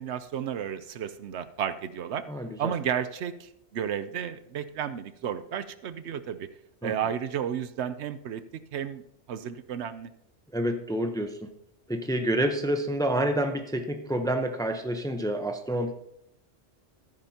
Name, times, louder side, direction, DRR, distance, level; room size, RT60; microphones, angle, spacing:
voice 1, 0.0-2.2 2.6-6.5 6.8-9.0 9.3-10.1, right 8 dB, 75° right, 13 dB, 0.9 m, -32 dB
voice 2, 2.3-2.7 6.8-6.9 10.5-11.5 11.9-15.9, right 1 dB, 5° left, 6 dB, 0.6 m, -28 dB
13.5 x 10.5 x 2.8 m, 0.78 s
omnidirectional pair, 1.2 m